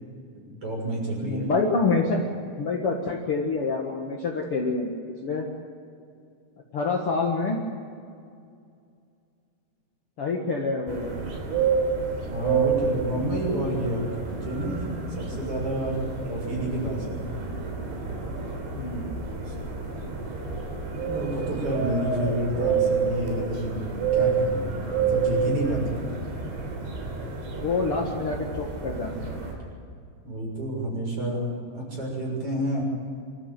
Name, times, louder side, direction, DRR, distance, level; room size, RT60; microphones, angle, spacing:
voice 1, 0.3-1.5 12.3-14.8 15.2-17.2 19.4-19.5 21.0-26.0 30.2-31.4 31.7-32.8, right 1 dB, 30° right, -2 dB, 7.6 m, -29 dB
voice 2, 1.2-2.2 2.6-4.9 5.2-5.5 6.7-7.6 10.2-11.2 18.7-19.1 27.6-29.4, left 3 dB, 65° left, 0 dB, 1.4 m, -27 dB
sound 1, 10.9-29.5, right 5 dB, 80° right, 5.8 m, -29 dB
25.5 x 13.5 x 9.3 m, 2.4 s
omnidirectional pair, 5.3 m